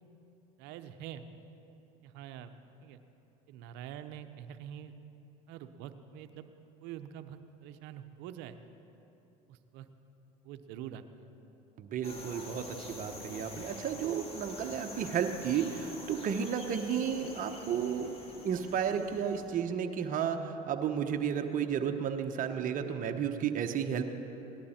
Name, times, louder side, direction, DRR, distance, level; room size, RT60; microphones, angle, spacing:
voice 1, 0.6-1.3 2.0-2.5 2.8-3.0 3.5-4.9 5.5-6.4 6.8-8.6 9.5-9.9 10.4-11.2, right 10 dB, 70° right, 10 dB, 0.8 m, -45 dB
voice 2, 11.8-18.1 18.4-24.0, right 8 dB, 45° right, 5 dB, 1.0 m, -33 dB
sound 1, 12.0-19.6, left 2 dB, 30° left, 2.1 m, -46 dB
17.5 x 11.5 x 4.3 m, 3.0 s
supercardioid pair, 85°, 19 cm